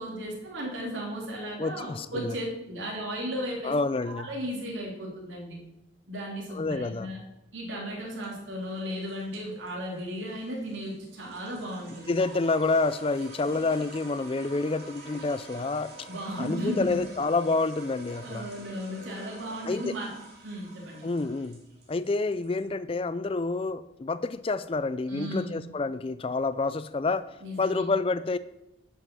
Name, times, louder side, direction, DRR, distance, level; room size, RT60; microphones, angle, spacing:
voice 1, 0.0-3.7 4.0-5.6 6.1-7.2 7.5-12.2 16.1-17.0 18.2-20.1 20.4-21.1 25.1-25.6 27.4-27.8, equal, 85° right, -2 dB, 3.0 m, -35 dB
voice 2, 1.6-2.4 3.6-4.3 6.5-7.1 12.1-16.1 16.4-18.5 19.6-19.9 21.0-21.6 21.9-27.3 27.6-28.4, left 3 dB, 30° left, 14 dB, 0.4 m, -28 dB
sound 1, 8.1-22.6, right 3 dB, 55° right, 2.9 m, -48 dB
11.0 x 5.6 x 6.1 m, 0.90 s
head